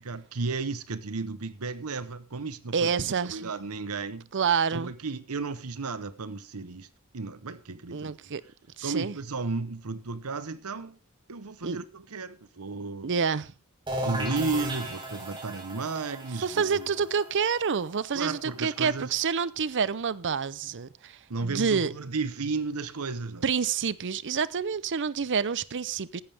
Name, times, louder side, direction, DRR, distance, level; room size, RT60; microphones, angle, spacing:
voice 1, 0.0-2.9 3.2-4.3 4.7-6.9 7.1-8.3 8.8-11.0 11.3-13.1 14.0-16.9 18.1-19.2 21.3-23.4, right 4 dB, 85° right, 1.0 m, -34 dB
voice 2, 2.7-3.5 4.3-4.9 7.9-8.4 8.8-9.1 11.6-11.8 13.0-13.5 16.4-21.9 23.4-26.2, right 6 dB, 55° right, 0.6 m, -28 dB
sound 1, 13.9-19.4, right 1 dB, 20° right, 3.9 m, -36 dB
15.5 x 11.5 x 3.5 m
head